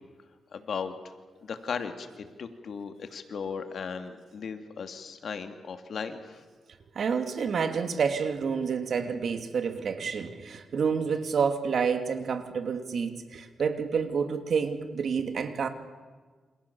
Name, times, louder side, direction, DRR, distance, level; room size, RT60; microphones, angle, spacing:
voice 1, 0.5-0.9 1.4-6.4, left 6 dB, 65° left, 2.6 m, -36 dB
voice 2, 6.9-15.7, right 6 dB, 65° right, 2.9 m, -29 dB
29.0 x 27.5 x 7.3 m
cardioid pair, 95°, 0 cm